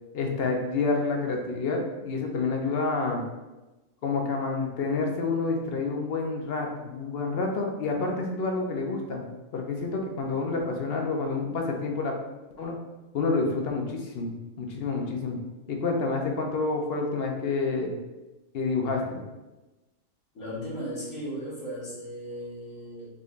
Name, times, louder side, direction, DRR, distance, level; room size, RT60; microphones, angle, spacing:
voice 1, 0.1-3.2 4.0-9.2 9.5-12.1 12.6-12.8 13.1-15.4 15.7-17.9 18.5-19.2, left 3 dB, 55° left, 1 dB, 0.8 m, -28 dB
voice 2, 20.3-23.1, equal, 75° left, -9 dB, 1.9 m, -36 dB
5.0 x 3.2 x 2.4 m, 1.1 s
omnidirectional pair, 1.4 m